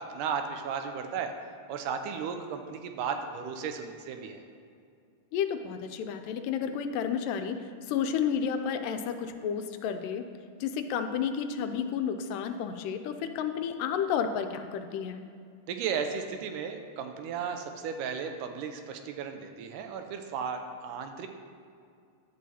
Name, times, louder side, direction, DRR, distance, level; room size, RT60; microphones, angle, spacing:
voice 1, 0.0-1.3 1.7-4.4 15.7-21.3, right 6 dB, 85° right, 6 dB, 2.1 m, -35 dB
voice 2, 5.3-7.6 7.9-10.3 10.6-15.2, left 7 dB, 85° left, 7 dB, 2.2 m, -31 dB
11.0 x 7.5 x 2.8 m, 2.3 s
omnidirectional pair, 3.8 m